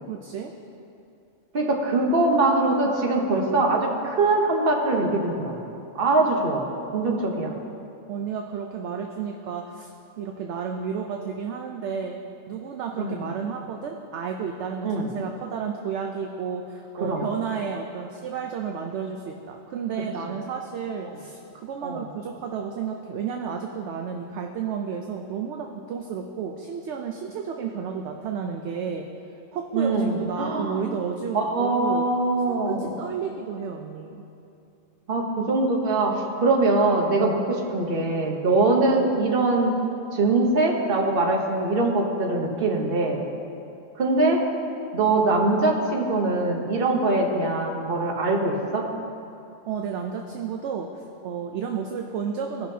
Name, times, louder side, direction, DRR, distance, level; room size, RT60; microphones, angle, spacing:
voice 1, 0.1-0.5 8.1-9.9 10.2-12.2 12.5-29.1 29.5-32.1 32.5-34.2 49.7-52.7, right 6 dB, 65° right, 3 dB, 0.8 m, -32 dB
voice 2, 1.5-5.6 5.9-6.6 6.9-7.5 13.0-13.2 14.8-15.1 17.0-17.2 21.8-22.0 29.7-30.9 31.3-32.9 35.1-39.7 40.1-43.2 43.9-44.4 44.9-48.9, right 2 dB, 45° right, 0 dB, 1.1 m, -22 dB
17.0 x 5.8 x 2.7 m, 2.7 s
omnidirectional pair, 1.4 m